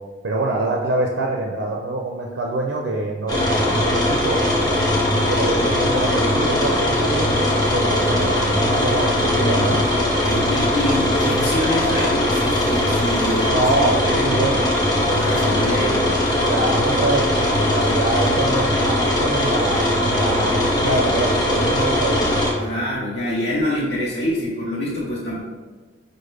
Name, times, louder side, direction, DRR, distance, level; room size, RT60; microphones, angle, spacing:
voice 1, 0.2-4.4 5.2-9.8 13.5-14.7 16.5-22.3, right 2 dB, 65° right, 0 dB, 0.4 m, -25 dB
sound 1, 3.3-22.5, left 1 dB, 20° left, 0.8 m, -20 dB
voice 2, 9.2-9.8 10.1-14.4 15.2-16.2 22.6-25.4, left 1 dB, 60° left, -8 dB, 0.8 m, -26 dB
6.1 x 2.1 x 3.2 m, 1.4 s
head